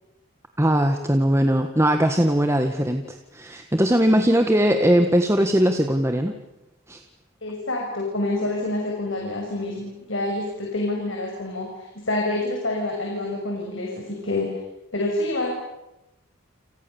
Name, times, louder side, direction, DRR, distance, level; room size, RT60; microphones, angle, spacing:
voice 1, 0.6-6.3 6.9-7.0, equal, 15° right, 5 dB, 1.4 m, -20 dB
voice 2, 7.4-14.5 14.9-15.5, left 2 dB, 65° left, 0 dB, 6.4 m, -27 dB
29.5 x 28.0 x 7.1 m, 0.94 s
head